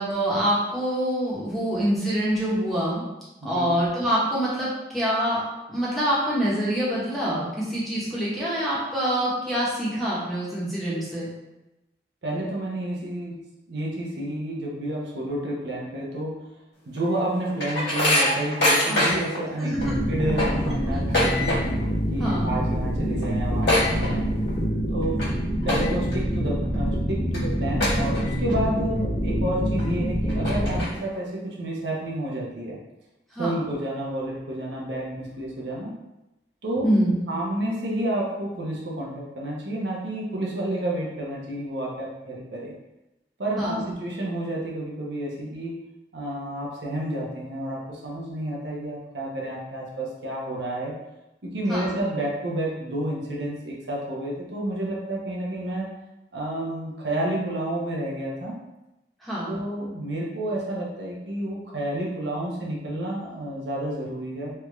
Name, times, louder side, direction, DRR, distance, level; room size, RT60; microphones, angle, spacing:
voice 1, 0.0-3.0 3.4-5.4 5.7-11.3 18.9-19.1 19.6-20.0 20.9-21.0 22.2-22.5 33.3-33.7 36.8-37.2 43.6-43.8 51.7-51.9 59.2-59.6, equal, ahead, -8 dB, 0.8 m, -25 dB
voice 2, 3.4-3.7 12.2-13.4 13.7-16.4 16.9-19.7 20.1-21.6 22.1-24.3 24.9-25.2 25.6-32.8 33.4-35.9 36.6-36.9 37.3-42.7 43.4-45.8 46.1-50.9 51.4-55.9 56.3-58.6 59.5-64.5, right 1 dB, 80° right, -3 dB, 0.7 m, -30 dB
sound 1, 17.0-19.4 19.8-19.9 20.2-21.9 22.2-22.5 22.8-22.9 23.2-24.6 25.0-25.3 25.6-26.1 26.6-26.7 27.3-27.4 27.8-28.5 29.0-29.1 29.8-29.9 30.3-31.2, left 1 dB, 75° left, 1.5 m, -24 dB
sound 2, 19.8-30.8, equal, 40° left, 0.5 m, -26 dB
3.3 x 2.3 x 3.0 m, 0.96 s
head